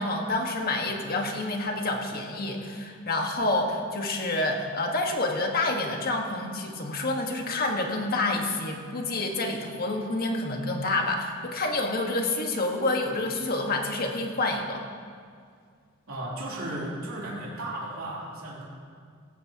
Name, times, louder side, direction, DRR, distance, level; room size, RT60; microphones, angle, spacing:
voice 1, 0.0-14.8, left 2 dB, 45° left, 2 dB, 1.6 m, -28 dB
voice 2, 16.1-18.6, right 1 dB, 85° right, -6 dB, 3.3 m, -35 dB
17.0 x 15.5 x 2.9 m, 2.1 s
head